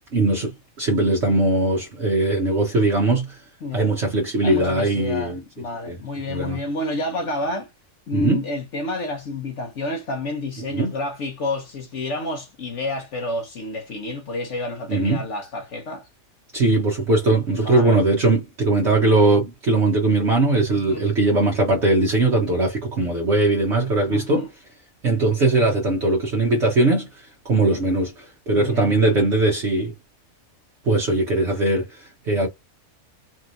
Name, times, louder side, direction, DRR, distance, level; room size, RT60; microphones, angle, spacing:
voice 1, 0.1-0.5 0.8-3.4 3.7-5.4 5.9-6.0 6.3-6.6 8.1-8.4 10.7-10.9 14.9-15.2 16.5-24.4 25.0-29.9 30.8-32.5, right 2 dB, 55° right, 1.3 m, -20 dB
voice 2, 4.4-7.7 8.1-16.1 17.6-18.0 20.7-21.0 24.1-24.5 28.5-28.9, left 2 dB, 60° left, 1.2 m, -29 dB
4.3 x 3.2 x 2.6 m
omnidirectional pair, 1.4 m